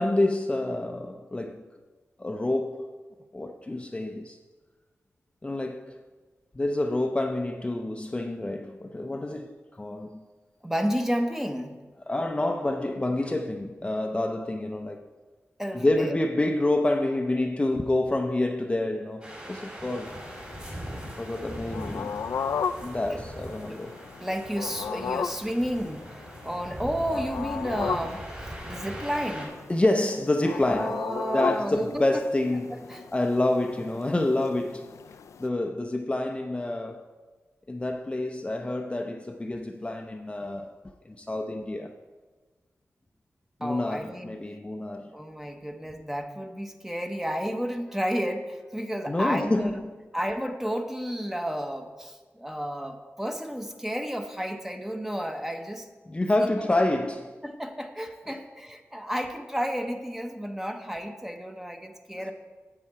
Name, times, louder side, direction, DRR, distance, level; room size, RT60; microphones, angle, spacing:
voice 1, 0.0-1.6 2.2-2.9 3.3-4.4 5.4-6.0 6.5-10.2 12.1-15.1 15.7-20.2 21.0-22.2 22.8-24.0 29.7-31.0 31.3-32.8 33.1-35.0 35.4-37.0 37.7-40.8 41.0-42.0 43.6-45.2 49.1-49.9 56.1-57.3, left 2 dB, 20° left, 0.5 m, -28 dB
voice 2, 10.6-11.8 15.6-16.1 23.1-23.2 23.6-23.8 24.2-26.1 26.4-29.6 30.5-32.2 32.7-33.0 43.6-44.4 45.1-49.8 50.1-55.9 56.4-56.9 57.4-62.3, equal, 5° right, 0.9 m, -32 dB
sound 1, 19.2-29.5, right 1 dB, 30° right, 3.5 m, -41 dB
sound 2, 20.1-35.5, left 6 dB, 90° left, 0.3 m, -36 dB
9.1 x 7.7 x 4.6 m
wide cardioid pair, 70°, 5 cm